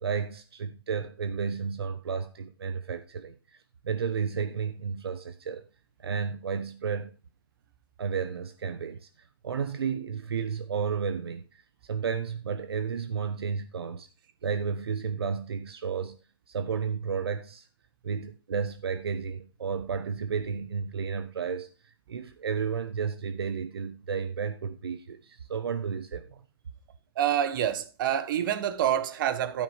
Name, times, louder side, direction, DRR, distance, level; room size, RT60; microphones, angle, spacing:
voice 1, 0.0-3.3 3.8-5.6 6.0-7.1 8.0-9.1 9.4-11.6 11.9-14.1 14.4-16.2 16.5-17.7 18.0-26.4, right 6 dB, 85° right, 1.0 m, -32 dB
voice 2, 27.1-29.6, right 10 dB, 55° right, 1.5 m, -27 dB
12.5 x 5.3 x 4.8 m
hypercardioid pair, 135°, 13 cm